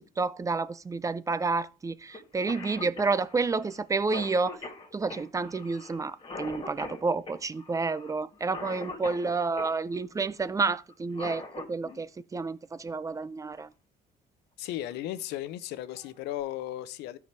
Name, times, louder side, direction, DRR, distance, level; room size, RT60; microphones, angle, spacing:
voice 1, 0.2-4.6 4.9-11.4 11.7-13.7, right 4 dB, 20° right, 0.4 m, -30 dB
Cough, 2.1-2.2 2.5-9.8 10.9-12.0 13.6-13.7 14.7-15.0 15.5-15.6 15.9-16.4, left 3 dB, 30° left, 2.2 m, -42 dB
voice 2, 14.6-17.2, left 13 dB, 90° left, 0.7 m, -35 dB
13.0 x 4.8 x 3.3 m
cardioid pair, 110°, 17 cm